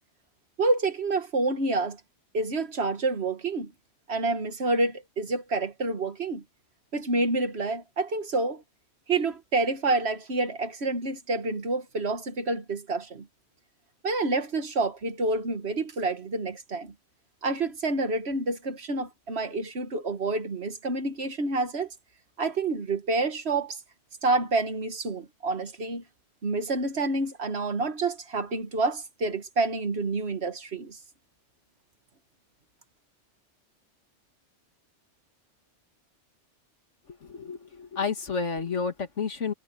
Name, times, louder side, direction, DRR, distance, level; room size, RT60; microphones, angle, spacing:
voice 1, 0.6-2.0 2.3-3.7 4.1-6.4 6.9-8.6 9.1-13.3 14.0-16.9 17.4-21.9 22.4-23.8 24.2-26.0 26.4-31.0, right 3 dB, 65° right, 1.8 m, -28 dB
voice 2, 37.1-39.5, left 5 dB, 85° left, 2.3 m, -31 dB
omnidirectional pair, 1.2 m